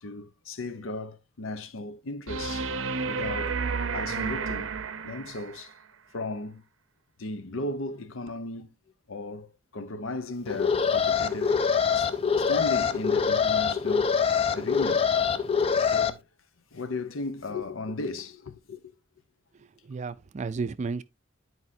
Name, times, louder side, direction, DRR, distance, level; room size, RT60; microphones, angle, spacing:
voice 1, 0.0-2.7 3.0-3.6 3.9-4.7 5.0-5.7 6.1-6.6 7.2-8.7 9.1-11.6 11.9-14.1 14.5-15.1 15.8-16.2 16.7-18.9, left 2 dB, 85° left, 0.7 m, -36 dB
sound 1, 2.3-5.6 8.3-8.4, right 5 dB, 75° right, 0.6 m, -31 dB
Alarm, 10.5-16.1, left 6 dB, 30° left, 0.4 m, -24 dB
voice 2, 19.6-21.0, right 4 dB, 35° right, 0.3 m, -33 dB
9.7 x 4.8 x 2.7 m
head